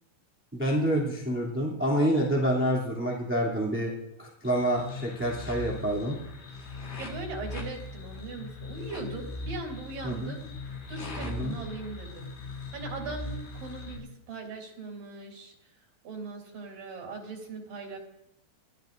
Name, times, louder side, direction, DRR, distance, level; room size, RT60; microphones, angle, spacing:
voice 1, 0.5-3.9 4.2-6.1 10.0-10.3 11.2-11.5, equal, 5° right, -4 dB, 2.0 m, -27 dB
sound 1, 4.4-14.0, left 2 dB, 90° left, 4.7 m, -39 dB
voice 2, 7.0-10.4 10.9-15.5 16.0-18.0, right 3 dB, 80° right, 0 dB, 4.8 m, -40 dB
29.0 x 12.0 x 2.6 m, 0.81 s
omnidirectional pair, 3.8 m